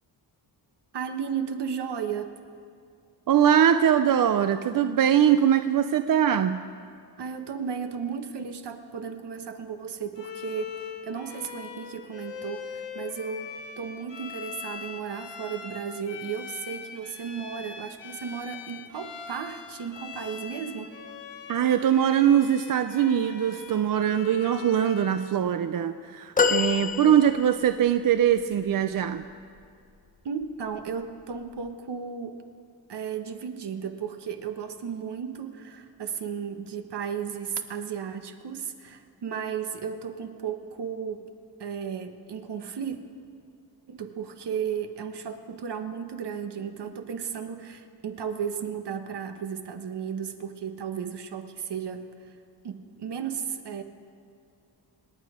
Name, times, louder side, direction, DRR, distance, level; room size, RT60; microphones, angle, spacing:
voice 1, 0.9-2.3 7.2-20.9 30.2-32.4 32.9-41.3 41.6-43.0 43.9-52.0 52.6-53.8, right 7 dB, 70° right, 7 dB, 1.3 m, -34 dB
voice 2, 3.3-6.6 21.5-29.2, right 9 dB, 50° right, 10 dB, 0.5 m, -22 dB
Bowed string instrument, 10.1-25.4, left 7 dB, 85° left, 1.2 m, -41 dB
sound 1, 26.4-27.8 28.5-28.6, left 5 dB, 20° left, 0.7 m, -26 dB
27.0 x 9.4 x 5.0 m, 2.3 s
wide cardioid pair, 145°, 42 cm